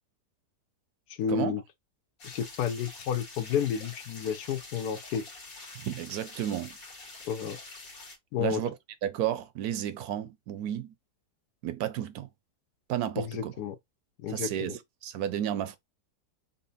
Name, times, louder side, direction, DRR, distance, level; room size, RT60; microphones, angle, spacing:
voice 1, 1.2-1.6 2.2-5.2 7.3-7.6 8.3-8.6 13.2-13.7 14.2-14.8, left 8 dB, 75° left, 1.2 m, -31 dB
sound 1, 2.2-8.2, left 3 dB, 60° left, 1.8 m, -46 dB
voice 2, 5.8-6.8 8.4-8.7 9.0-10.9 11.6-12.3 12.9-13.5 14.3-15.8, right 11 dB, 75° right, 1.0 m, -32 dB
4.0 x 2.0 x 3.9 m
omnidirectional pair, 1.7 m